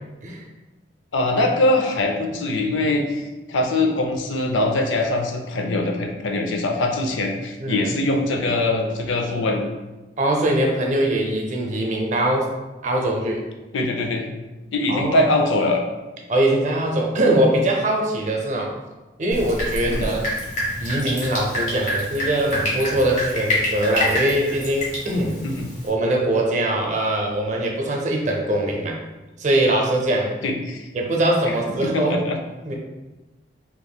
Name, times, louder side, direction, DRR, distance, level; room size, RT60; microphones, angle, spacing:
voice 1, 1.1-9.7 13.7-14.3 14.7-15.8 19.9-20.1 25.4-25.7 30.4-30.9 31.8-32.4, left 2 dB, 90° left, 3 dB, 0.5 m, -22 dB
voice 2, 10.2-12.5 12.8-13.4 14.9-15.3 16.3-18.7 19.2-20.3 20.8-25.4 25.8-29.0 29.4-30.3 30.9-32.2 32.7-32.8, right 1 dB, 40° right, 0 dB, 0.5 m, -22 dB
Drip, 19.3-25.9, left 1 dB, 40° left, 1.0 m, -27 dB
3.5 x 2.9 x 2.2 m, 1.1 s
head